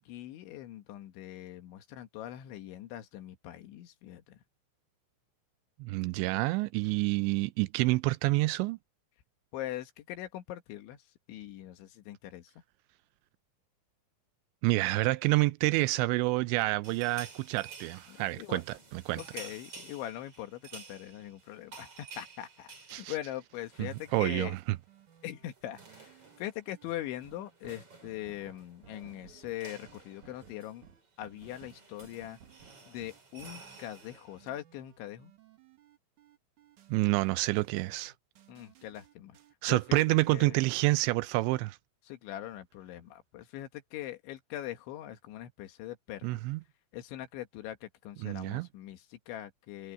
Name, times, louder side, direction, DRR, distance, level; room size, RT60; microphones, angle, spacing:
voice 1, 0.0-4.4 9.5-11.0 11.3-12.5 18.1-18.6 19.2-24.6 25.2-30.9 31.2-32.4 32.9-35.3 38.5-39.4 39.7-40.6 42.1-46.4 46.9-49.9, left 13 dB, 85° left, 3.9 m, -42 dB
voice 2, 5.8-8.8 14.6-19.2 22.9-23.1 23.8-24.6 36.9-38.1 39.6-41.8 46.2-46.6 48.2-48.7, right 21 dB, 85° right, 2.8 m, -28 dB
sound 1, 16.8-24.7 25.0-25.2 25.4-34.5, right 5 dB, 30° right, 5.9 m, -52 dB
sound 2, 24.9-40.1, right 8 dB, 55° right, 2.8 m, -59 dB
omnidirectional pair, 5.2 m